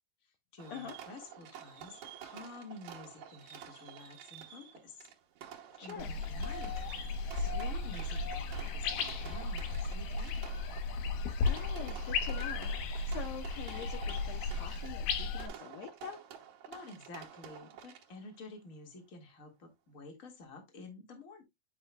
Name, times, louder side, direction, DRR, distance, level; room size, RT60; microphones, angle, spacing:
voice 1, 0.2-5.1 5.4-6.8 7.3-10.5 16.7-21.4, left 3 dB, 30° left, 1.7 m, -50 dB
Fireworks, 0.6-18.4, right 9 dB, 70° right, 2.5 m, -51 dB
voice 2, 5.8-6.1 11.4-16.2, left 8 dB, 70° left, 1.8 m, -45 dB
sound 1, 6.0-15.5, left 3 dB, 90° left, 2.6 m, -35 dB
10.0 x 5.5 x 2.2 m
omnidirectional pair, 3.6 m